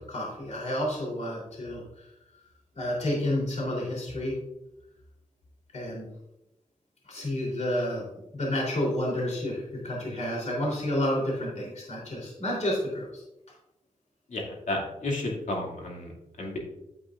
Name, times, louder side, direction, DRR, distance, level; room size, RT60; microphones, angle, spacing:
voice 1, 0.1-1.8 2.7-4.3 5.7-6.1 7.1-8.0 8.3-13.2, left 1 dB, 60° left, -3 dB, 3.4 m, -30 dB
voice 2, 14.3-16.1 16.4-16.6, left 2 dB, 80° left, -1 dB, 2.4 m, -32 dB
10.0 x 8.2 x 2.5 m, 0.90 s
wide cardioid pair, 85°, 13 cm